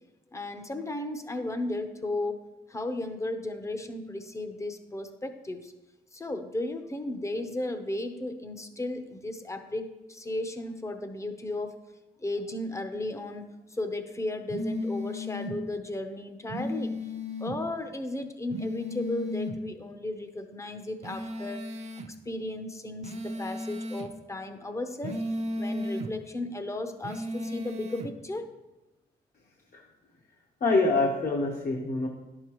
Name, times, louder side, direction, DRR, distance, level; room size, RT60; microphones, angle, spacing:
voice 1, 0.3-2.4 2.7-5.7 6.1-11.8 12.2-13.4 13.7-17.0 17.4-21.6 22.2-25.2 25.6-28.5, left 2 dB, 15° left, 7 dB, 0.7 m, -35 dB
sound 1, 14.5-15.6 16.5-17.6 18.5-19.6 21.0-22.1 23.0-24.1 25.0-26.1 27.0-28.1, left 1 dB, 40° right, 0.6 m, -34 dB
voice 2, 30.6-32.1, left 3 dB, 50° left, -1 dB, 1.0 m, -25 dB
10.5 x 6.6 x 3.0 m, 1.0 s
cardioid pair, 105°, 17 cm